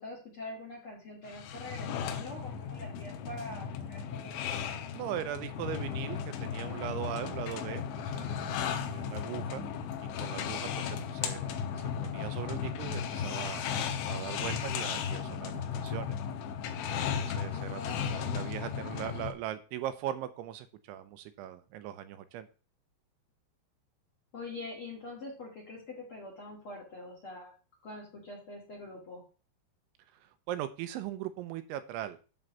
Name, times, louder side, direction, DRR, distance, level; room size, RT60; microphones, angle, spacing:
voice 1, 0.0-4.4 17.5-18.5 24.3-27.5 27.8-29.2, left 2 dB, 40° left, 0 dB, 2.1 m, -44 dB
sound 1, 1.3-19.3, left 7 dB, 85° left, 3.6 m, -35 dB
voice 2, 4.9-9.7 10.0-11.5 12.0-16.2 17.0-22.5 30.2-32.2, right 11 dB, 80° right, 10 dB, 3.1 m, -40 dB
11.0 x 4.0 x 7.1 m, 0.34 s
omnidirectional pair, 5.5 m